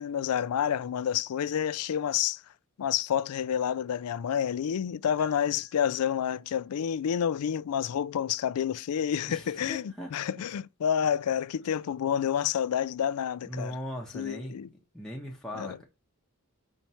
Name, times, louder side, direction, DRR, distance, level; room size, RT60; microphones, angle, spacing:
voice 1, 0.0-2.4 2.8-13.8 14.1-14.7 15.5-15.8, left 9 dB, 90° left, 0.4 m, -29 dB
Piano, 5.2-6.9, right 4 dB, 90° right, 2.5 m, -59 dB
voice 2, 9.3-10.1 13.4-14.6 14.9-15.8, equal, ahead, 1.0 m, -39 dB
4.5 x 4.5 x 5.5 m
head